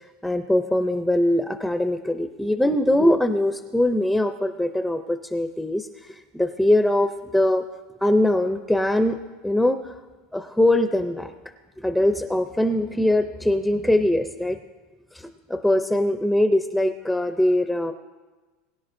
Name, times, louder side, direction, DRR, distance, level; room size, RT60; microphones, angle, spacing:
voice 1, 0.2-7.6 8.0-9.2 9.4-9.9 10.3-11.3 11.8-14.6 15.1-17.9, left 1 dB, ahead, 7 dB, 0.4 m, -22 dB
21.5 x 10.5 x 2.6 m, 1.3 s
supercardioid pair, 155°, 0 cm